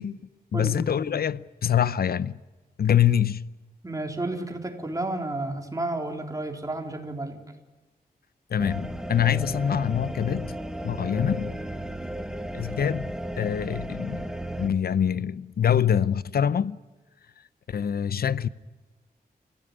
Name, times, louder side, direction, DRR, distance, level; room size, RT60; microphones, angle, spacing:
voice 1, 0.0-2.4 2.8-3.5 8.5-10.6 10.8-11.6 12.5-14.3 14.6-16.8 17.7-18.5, left 9 dB, 75° left, 0.7 m, -25 dB
voice 2, 0.5-0.8 3.8-7.4, right 2 dB, 20° right, 4.0 m, -31 dB
sound 1, 8.6-14.7, right 1 dB, 5° right, 1.8 m, -34 dB
29.0 x 16.0 x 9.9 m
wide cardioid pair, 105°, 16 cm